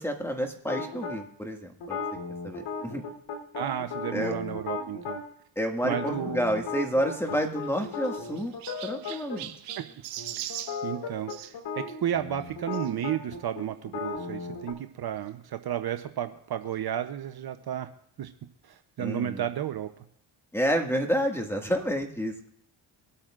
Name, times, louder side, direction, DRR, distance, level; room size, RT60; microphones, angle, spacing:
voice 1, 0.0-2.0 2.4-3.0 4.1-4.4 5.6-8.5 8.8-9.5 19.0-19.4 20.5-22.5, equal, 5° left, 3 dB, 1.9 m, -29 dB
sound 1, 0.7-1.2 1.8-5.2 5.8-9.4 9.7-9.8 10.2-14.7, left 4 dB, 75° left, 3.5 m, -36 dB
voice 2, 3.5-5.2 5.8-6.4 7.3-7.4 9.1-9.2 9.8-9.9 10.4-10.5 10.8-17.9 18.2-18.3 18.6-20.0, right 10 dB, 50° right, 9 dB, 0.8 m, -33 dB
Chirp tweet, 7.3-11.5 12.7-12.9 13.6-13.7 13.9-14.0 15.3-15.4, right 13 dB, 85° right, 1.0 m, -41 dB
24.5 x 8.6 x 2.5 m, 0.70 s
supercardioid pair, 65°, 48 cm